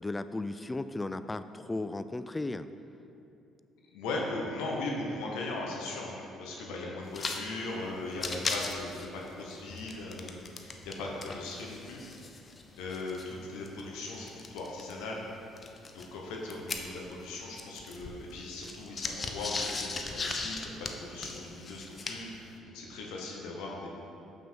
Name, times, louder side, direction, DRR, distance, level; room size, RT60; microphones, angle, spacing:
voice 1, 0.0-2.7, left 2 dB, 20° left, 12 dB, 0.3 m, -35 dB
voice 2, 3.9-12.0 12.7-15.3 15.9-20.7 21.0-23.9, left 2 dB, 70° left, -1 dB, 0.9 m, -38 dB
sound 1, 7.1-7.4 7.7-7.8 8.1-11.0 11.2-14.9 15.6-17.3 17.5-22.4, left 3 dB, 40° left, 0.7 m, -38 dB
6.9 x 6.0 x 4.5 m, 2.7 s
hypercardioid pair, 50°, 0 cm